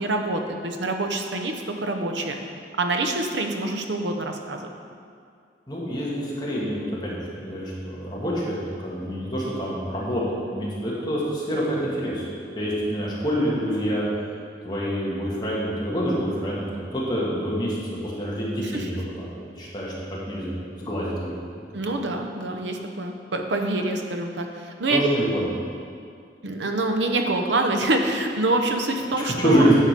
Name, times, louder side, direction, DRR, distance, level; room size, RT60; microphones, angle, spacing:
voice 1, 0.0-1.5 1.8-2.3 2.8-4.7 18.6-19.0 21.7-25.1 26.4-29.7, right 2 dB, 75° right, 4 dB, 0.8 m, -26 dB
voice 2, 5.7-12.3 12.5-14.0 14.6-17.7 18.0-21.9 24.9-25.5 29.2-29.8, equal, 25° left, -6 dB, 1.7 m, -26 dB
9.9 x 4.9 x 5.2 m, 2.3 s
head